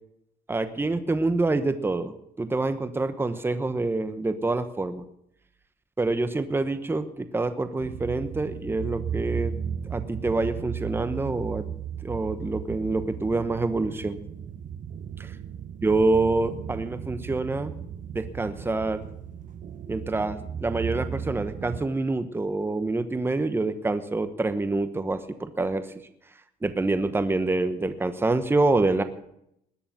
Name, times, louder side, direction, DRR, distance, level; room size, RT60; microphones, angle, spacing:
voice 1, 0.5-5.0 6.0-9.5 9.9-11.7 12.0-14.2 15.2-15.3 15.8-17.7 18.1-19.0 19.9-25.9 26.6-29.0, right 2 dB, 15° right, 10 dB, 1.1 m, -26 dB
sound 1, 7.8-21.9, right 8 dB, 50° right, 1.1 m, -36 dB
20.5 x 6.9 x 9.2 m, 0.77 s
cardioid pair, 110°, 17 cm